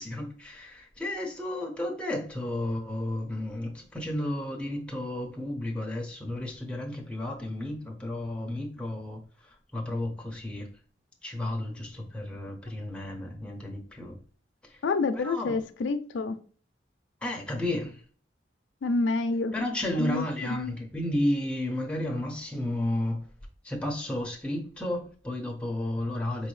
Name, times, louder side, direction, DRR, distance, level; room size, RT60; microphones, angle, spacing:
voice 1, 0.0-9.2 9.7-10.7 11.2-14.2 14.7-14.8 15.1-15.6 17.2-18.0 19.5-23.2 23.6-26.5, left 1 dB, 5° left, 0.7 m, -32 dB
voice 2, 14.8-16.4 18.8-19.5 20.0-20.7, left 3 dB, 90° left, 0.4 m, -28 dB
4.7 x 2.6 x 3.1 m
head